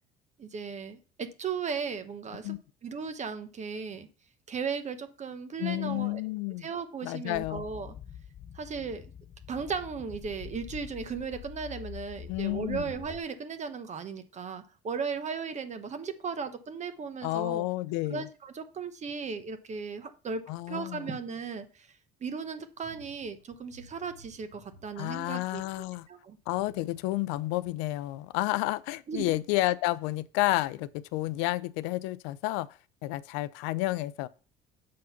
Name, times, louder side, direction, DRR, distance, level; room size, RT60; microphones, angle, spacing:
voice 1, 0.4-2.5 2.8-4.1 4.5-6.2 6.6-7.9 8.5-9.0 9.5-17.6 18.1-20.4 20.7-25.6 26.1-26.4 29.1-29.4, right 5 dB, 40° right, 0.9 m, -36 dB
voice 2, 5.6-6.7 7.0-7.7 12.3-12.9 17.2-18.3 20.5-21.2 25.0-26.1 26.5-32.7 33.0-34.3, left 18 dB, 85° left, 0.5 m, -31 dB
sound 1, 7.3-13.2, left 9 dB, 40° left, 0.7 m, -45 dB
sound 2, 22.8-25.8 26.3-28.0 28.5-28.6, right 1 dB, 75° right, 3.6 m, -57 dB
7.6 x 3.8 x 5.7 m
supercardioid pair, 90°, 19 cm